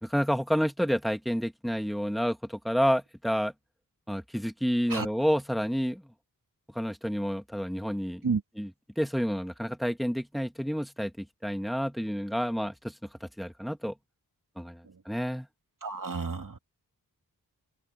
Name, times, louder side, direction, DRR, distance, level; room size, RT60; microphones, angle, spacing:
voice 1, 0.0-3.5 4.1-6.1 6.7-8.3 8.6-8.7 9.0-13.0 13.2-13.9 14.6-15.5, equal, ahead, 2.0 m, -29 dB
voice 2, 15.8-16.6, right 4 dB, 55° right, 2.8 m, -31 dB
open air
wide cardioid pair, 80°, 37 cm